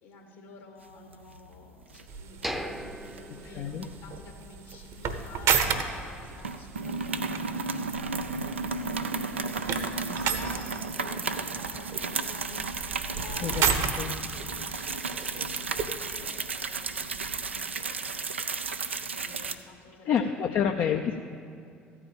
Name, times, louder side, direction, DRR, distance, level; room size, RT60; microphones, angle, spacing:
voice 1, 0.0-20.5 20.9-21.2, left 4 dB, 70° left, 1 dB, 2.3 m, -50 dB
sound 1, 0.9-1.5 1.8-2.0 2.4-3.2 3.8-5.7 6.0-6.1 6.4-19.5, right 4 dB, 85° right, 0.5 m, -33 dB
sound 2, 2.1-17.6, right 6 dB, 55° right, 1.0 m, -34 dB
sound 3, 2.4-4.4 4.7-4.8 5.3-5.5, equal, ahead, 0.7 m, -38 dB
voice 2, 3.5-3.8 13.4-14.1 20.1-21.2, left 7 dB, 50° left, 4 dB, 0.6 m, -28 dB
14.0 x 4.9 x 9.1 m, 2.5 s
figure-of-eight pair, 55°, 6 cm